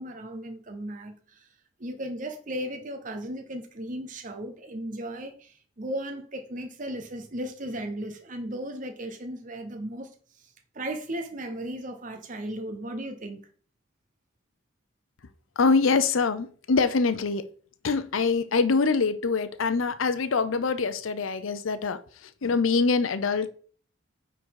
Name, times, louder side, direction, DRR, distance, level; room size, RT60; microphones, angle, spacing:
voice 1, 0.0-1.5 1.8-10.1 10.4-13.5, right 1 dB, 40° right, 0.9 m, -36 dB
voice 2, 15.6-17.4 17.8-23.5, left 4 dB, 90° left, 0.6 m, -24 dB
9.5 x 4.0 x 4.7 m
head